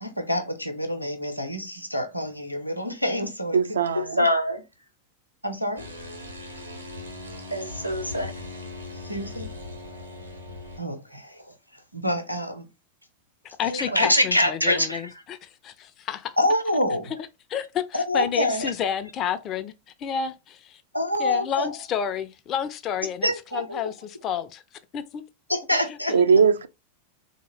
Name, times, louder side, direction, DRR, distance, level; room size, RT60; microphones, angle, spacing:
voice 1, 0.0-4.6 5.4-5.9 7.5-8.4 8.9-9.5 10.8-12.7 13.6-15.2 16.4-17.1 17.9-18.7 20.9-21.8 23.2-23.8 25.5-26.1, left 1 dB, 90° left, 0.7 m, -26 dB
voice 2, 3.5-4.2 26.1-26.7, right 6 dB, 70° right, 0.4 m, -20 dB
sound 1, 5.8-10.8, left 2 dB, 85° right, 1.4 m, -39 dB
voice 3, 13.4-16.3 17.5-19.7 20.0-20.8 21.2-24.6 24.9-25.2 26.1-26.2, left 8 dB, 30° left, 0.4 m, -30 dB
3.7 x 2.8 x 3.0 m
figure-of-eight pair, 90°, 0 cm